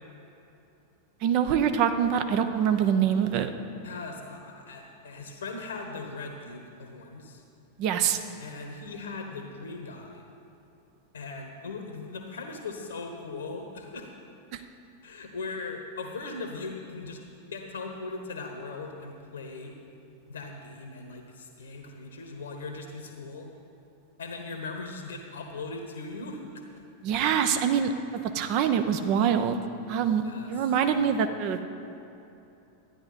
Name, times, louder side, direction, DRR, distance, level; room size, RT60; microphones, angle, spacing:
voice 1, 1.2-3.5 7.8-8.2 14.5-14.6 27.0-27.9 28.3-29.6 29.9-31.7, right 8 dB, 45° right, 8 dB, 0.7 m, -25 dB
voice 2, 3.8-7.4 8.4-10.2 11.1-14.1 15.0-17.2 17.5-19.7 20.3-23.5 24.2-26.8 30.2-30.5, left 3 dB, 70° left, 4 dB, 1.0 m, -39 dB
13.0 x 9.7 x 4.2 m, 2.9 s
figure-of-eight pair, 90°, 0 cm